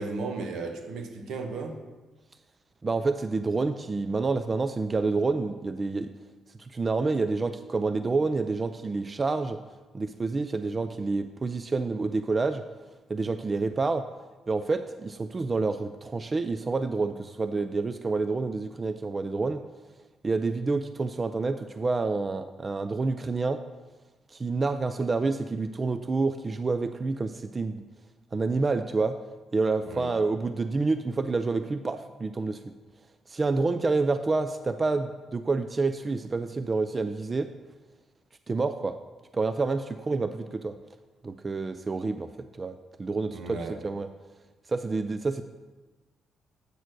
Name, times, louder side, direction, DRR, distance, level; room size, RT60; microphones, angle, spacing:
voice 1, 0.0-1.8 29.9-30.1 43.3-43.8, right 3 dB, 75° right, 5 dB, 0.9 m, -35 dB
voice 2, 2.8-6.1 6.6-9.6 9.9-12.6 13.1-14.1 14.5-19.6 20.2-23.6 24.3-27.8 28.3-29.2 29.5-32.7 33.3-37.5 38.5-39.0 39.3-40.8 41.2-42.3 42.6-44.1 44.7-45.4, right 3 dB, 30° right, 9 dB, 0.3 m, -28 dB
8.1 x 4.4 x 6.1 m, 1.2 s
cardioid pair, 90°, 0 cm